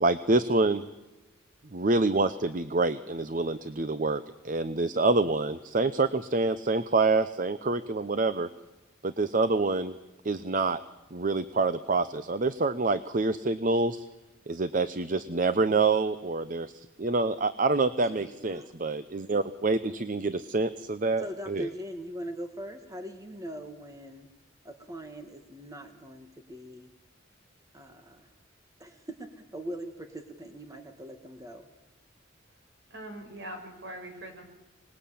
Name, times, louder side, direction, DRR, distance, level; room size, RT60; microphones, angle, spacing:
voice 1, 0.0-0.8 1.7-8.5 9.0-9.9 10.2-10.8 11.1-14.0 14.5-21.7, right 3 dB, 40° right, 13 dB, 0.8 m, -27 dB
voice 2, 18.0-18.7 21.2-24.3 24.6-26.9 27.7-28.3 28.8-31.7, equal, 20° right, 6 dB, 1.8 m, -41 dB
voice 3, 32.9-34.4, right 1 dB, 65° right, 5 dB, 5.5 m, -42 dB
25.5 x 20.5 x 8.6 m, 1.0 s
head